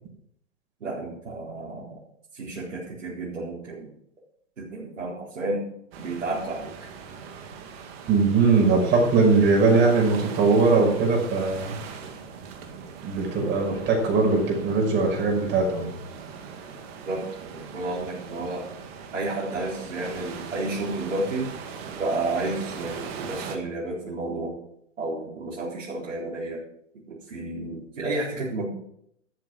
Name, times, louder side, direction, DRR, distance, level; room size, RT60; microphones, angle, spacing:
voice 1, 0.8-2.0 2.3-3.9 4.6-5.6 6.0-6.9 17.1-18.6 19.1-21.5 22.0-24.6 25.0-26.6 27.1-28.7, right 2 dB, 75° right, -7 dB, 4.4 m, -31 dB
sound 1, 5.9-23.6, right 6 dB, 50° right, 2.3 m, -40 dB
voice 2, 8.1-11.8 13.0-15.9, right 4 dB, 30° right, -1 dB, 6.0 m, -20 dB
13.0 x 8.0 x 6.3 m, 0.72 s
hypercardioid pair, 125°, 38 cm